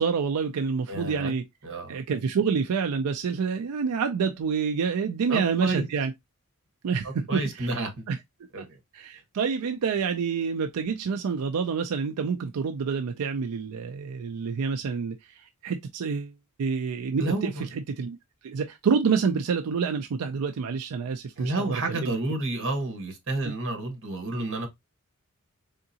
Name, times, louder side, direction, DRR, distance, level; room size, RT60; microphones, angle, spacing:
voice 1, 0.0-1.4 1.9-6.1 6.8-7.7 8.1-8.2 8.6-8.7 8.9-16.3 16.6-18.2 18.4-22.1 23.4-23.5, right 5 dB, 90° right, 0.4 m, -28 dB
voice 2, 0.9-1.3 1.6-2.0 5.3-5.9 7.0-8.1 8.5-8.8 17.2-17.7 21.4-24.7, right 2 dB, 60° right, 1.3 m, -30 dB
3.7 x 3.5 x 2.7 m
head